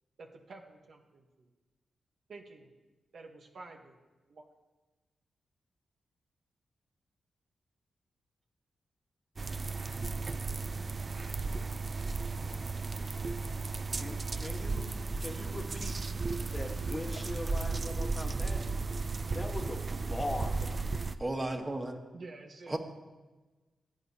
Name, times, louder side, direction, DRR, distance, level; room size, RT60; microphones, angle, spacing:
voice 1, 0.2-1.5 2.3-2.7 3.1-4.0 4.3-4.5 17.2-17.3 22.1-22.8, right 3 dB, 65° right, 3 dB, 1.1 m, -50 dB
sound 1, 9.4-21.2, right 3 dB, 45° right, 0.4 m, -35 dB
voice 2, 14.0-16.1 16.5-18.6 19.3-20.9, left 2 dB, 25° left, 4 dB, 1.3 m, -41 dB
voice 3, 21.2-22.0 22.7-22.8, right 2 dB, 30° right, 3 dB, 1.5 m, -34 dB
15.5 x 8.8 x 2.8 m, 1.2 s
supercardioid pair, 45°, 0 cm